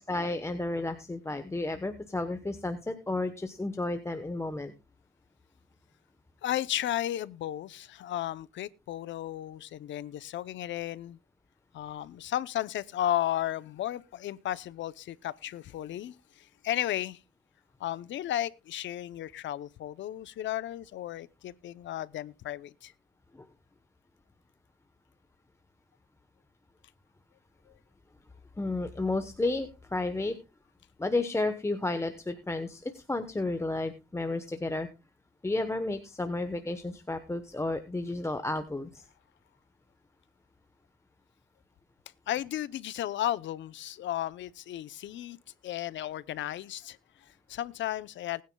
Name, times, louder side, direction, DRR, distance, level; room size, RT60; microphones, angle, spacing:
voice 1, 0.0-4.7 23.3-23.5 28.6-30.4 31.0-34.9 35.4-39.0, left 2 dB, 15° left, 1.0 m, -32 dB
voice 2, 6.4-11.2 11.7-17.2 17.8-22.9 42.3-45.4 45.6-48.4, left 12 dB, 70° left, 0.7 m, -34 dB
20.0 x 9.5 x 2.3 m
cardioid pair, 90°, 20 cm